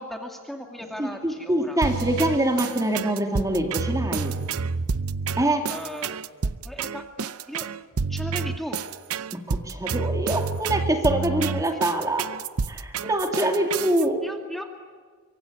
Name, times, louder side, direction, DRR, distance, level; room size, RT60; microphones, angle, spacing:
voice 1, 0.0-1.8 5.7-6.2 6.4-7.7 8.1-8.8 11.7-11.8 13.4-13.6 14.2-14.7, equal, ahead, 3 dB, 2.3 m, -37 dB
voice 2, 1.0-4.4 5.4-5.7 9.3-12.3 12.7-14.2, right 1 dB, 15° right, 4 dB, 2.4 m, -25 dB
sound 1, 1.8-14.1, right 5 dB, 85° right, 0.7 m, -29 dB
25.0 x 23.5 x 9.6 m, 1.5 s
head